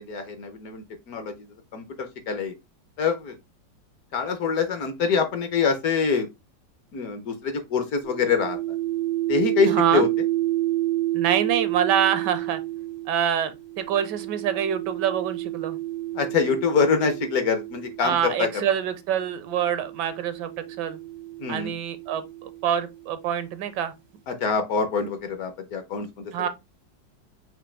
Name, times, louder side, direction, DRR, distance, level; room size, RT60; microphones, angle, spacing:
voice 1, 0.0-1.5 1.7-2.5 3.0-3.3 4.1-6.3 6.9-8.6 9.3-10.1 16.1-18.5 21.4-21.7 24.3-26.5, left 5 dB, 65° left, 1.1 m, -25 dB
sound 1, 8.0-18.4 19.3-23.0, right 16 dB, 45° right, 0.5 m, -30 dB
voice 2, 9.7-10.1 11.1-12.6 13.1-15.8 18.0-20.5 20.8-21.0 21.5-23.9 26.3-26.5, right 9 dB, 75° right, 1.2 m, -26 dB
6.0 x 2.7 x 3.1 m
omnidirectional pair, 2.0 m